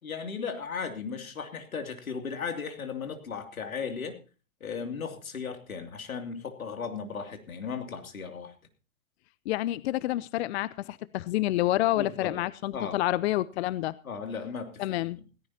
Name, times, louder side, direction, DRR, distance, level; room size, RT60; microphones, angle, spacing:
voice 1, 0.0-4.2 4.6-8.5 12.0-12.4 12.7-13.0 14.0-15.0, left 6 dB, 80° left, 6 dB, 2.8 m, -36 dB
voice 2, 9.5-14.0 14.8-15.2, left 16 dB, 50° left, 19 dB, 0.6 m, -28 dB
17.0 x 15.5 x 2.8 m, 0.35 s
hypercardioid pair, 105°, 41 cm